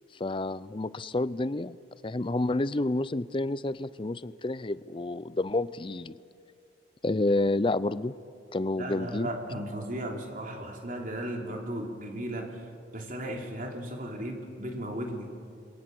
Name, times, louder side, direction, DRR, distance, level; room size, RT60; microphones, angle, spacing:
voice 1, 0.1-1.8 2.0-6.2 7.0-8.1 8.5-9.3, left 2 dB, 30° left, 17 dB, 0.5 m, -29 dB
voice 2, 8.8-12.6 12.9-15.3, right 1 dB, 50° right, 1 dB, 3.3 m, -36 dB
28.5 x 22.5 x 7.9 m, 2.4 s
head